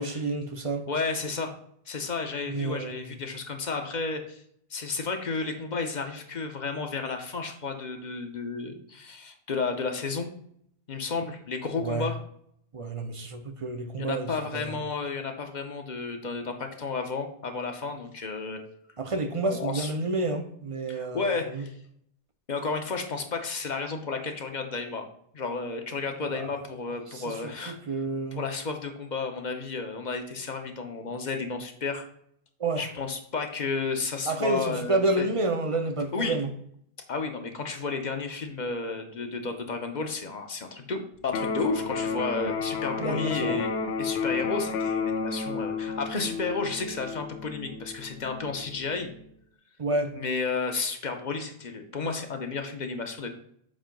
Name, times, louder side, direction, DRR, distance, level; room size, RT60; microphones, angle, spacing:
voice 1, 0.0-0.9 2.5-3.0 11.8-12.1 12.7-14.8 19.0-21.6 26.3-26.5 27.1-28.4 32.6-32.9 34.3-36.5 43.0-43.6 49.8-50.2, right 2 dB, 40° right, 0.6 m, -29 dB
voice 2, 0.9-1.5 1.9-4.4 4.7-10.3 10.9-12.2 14.0-18.6 19.4-19.9 20.9-21.7 22.5-25.1 25.3-27.8 28.3-32.0 32.8-35.3 36.1-36.4 37.1-43.7 44.0-49.1 50.1-53.3, left 4 dB, 50° left, 0.9 m, -32 dB
Electric guitar, 41.3-49.3, left 5 dB, 85° left, 0.8 m, -32 dB
7.4 x 2.8 x 5.1 m
omnidirectional pair, 1.0 m